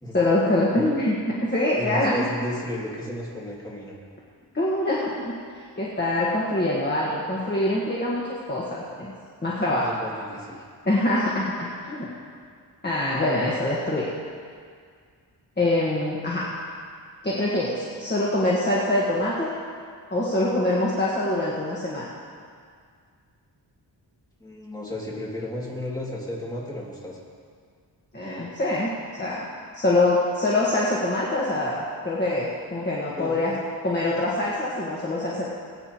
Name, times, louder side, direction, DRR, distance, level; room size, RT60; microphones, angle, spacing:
voice 1, 0.1-2.2 4.5-5.4 5.8-8.2 8.5-9.1 9.4-9.9 10.8-12.1 12.8-14.1 15.6-16.5 17.2-19.5 20.1-22.1 28.1-29.5 29.7-33.5 33.8-35.5, left 1 dB, 25° left, -6 dB, 1.5 m, -24 dB
voice 2, 1.8-4.0 9.7-10.6 24.4-27.2 33.2-33.4, left 1 dB, 10° left, -5 dB, 2.4 m, -33 dB
21.5 x 9.0 x 3.0 m, 2.1 s
wide cardioid pair, 135°, 43 cm